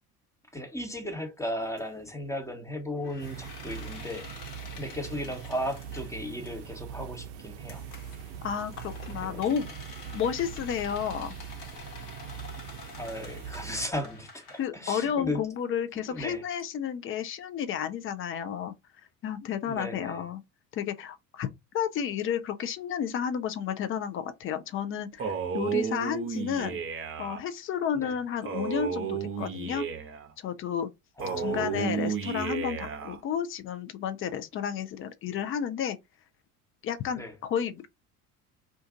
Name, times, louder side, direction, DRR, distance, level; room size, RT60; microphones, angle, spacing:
voice 1, 0.5-4.3 4.8-7.8 9.2-9.4 13.0-15.5 16.1-16.4 19.7-20.3 26.6-26.8 27.9-28.2 31.2-32.1 37.1-37.4, left 1 dB, 5° left, 1.0 m, -36 dB
sound 1, 1.6-1.8 3.0-6.8 7.7-14.6, left 4 dB, 55° left, 1.3 m, -48 dB
sound 2, 3.2-13.9, right 8 dB, 55° right, 0.6 m, -42 dB
voice 2, 8.4-9.7 10.1-11.3 14.6-18.7 19.2-20.4 20.7-21.5 21.7-26.8 27.2-29.8 30.4-30.9 31.4-36.0 36.8-37.9, left 8 dB, 30° left, 0.5 m, -32 dB
Male speech man speaking, 25.2-27.4 28.4-30.3 31.2-33.2, right 6 dB, 30° right, 0.8 m, -32 dB
2.5 x 2.5 x 3.7 m
figure-of-eight pair, 60°, 45 cm